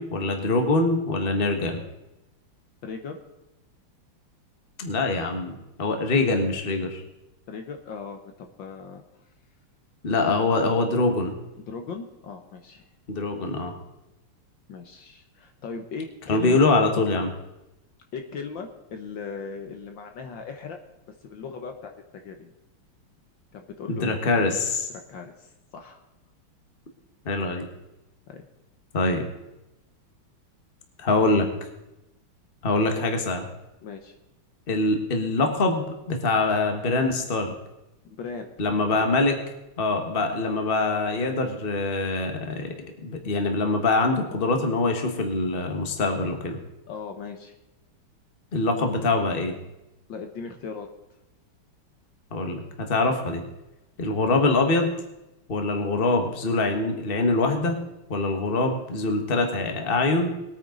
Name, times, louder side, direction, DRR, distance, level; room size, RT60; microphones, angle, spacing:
voice 1, 0.0-1.8 4.8-7.0 10.0-11.3 13.1-13.7 16.3-17.3 23.9-24.9 27.2-27.7 28.9-29.2 31.0-31.5 32.6-33.5 34.7-37.5 38.6-39.3 39.8-42.7 43.0-46.6 48.5-49.6 52.3-53.4 54.0-54.9 55.5-57.8 58.1-60.3, left 3 dB, 30° left, 4 dB, 1.5 m, -24 dB
voice 2, 2.8-3.2 7.5-9.0 11.6-12.8 14.7-16.7 18.1-20.8 21.2-22.5 23.5-24.2 24.9-26.0 28.3-28.5 33.8-34.2 38.1-38.5 38.9-39.0 46.9-47.5 50.1-50.9, left 5 dB, 65° left, 5 dB, 1.7 m, -38 dB
21.0 x 9.1 x 3.9 m, 0.96 s
omnidirectional pair, 2.4 m